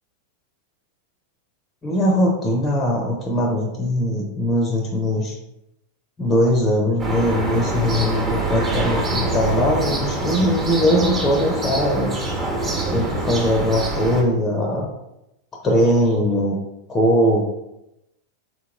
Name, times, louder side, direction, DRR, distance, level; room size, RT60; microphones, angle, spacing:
voice 1, 1.8-5.4 6.2-12.2 12.9-14.9 15.6-16.6 16.9-17.4, equal, 15° left, 1 dB, 0.6 m, -20 dB
sound 1, 7.0-14.2, right 2 dB, 30° right, 1.1 m, -25 dB
4.1 x 2.8 x 2.4 m, 0.88 s
figure-of-eight pair, 90°, 0 cm